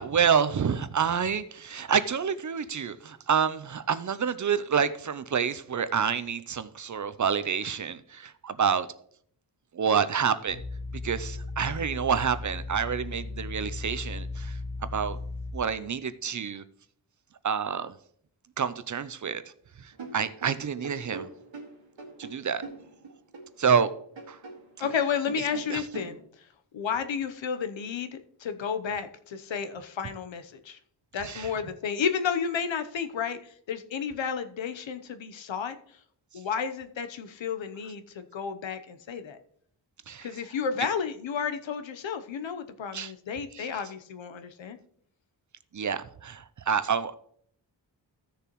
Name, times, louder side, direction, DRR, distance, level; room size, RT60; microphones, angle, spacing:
voice 1, 0.0-8.9 9.7-10.6 11.0-14.6 14.9-15.2 15.5-16.6 17.4-17.9 18.6-19.4 19.8-21.3 22.2-22.6 23.6-23.9 24.3-24.4 25.7-25.8 31.2-31.5 40.1-40.3 42.9-43.1 43.5-43.8 45.7-47.1, right 7 dB, 40° right, 0.5 m, -28 dB
sound 1, 10.5-15.5, left 3 dB, 25° left, 1.7 m, -36 dB
sound 2, 19.9-23.9 24.2-26.2, right 3 dB, 80° right, 2.0 m, -42 dB
voice 2, 24.8-26.2 26.7-30.8 31.1-35.8 36.3-39.4 40.2-44.8, left 7 dB, 85° left, 0.9 m, -32 dB
15.0 x 6.8 x 3.0 m
wide cardioid pair, 145°, 45 cm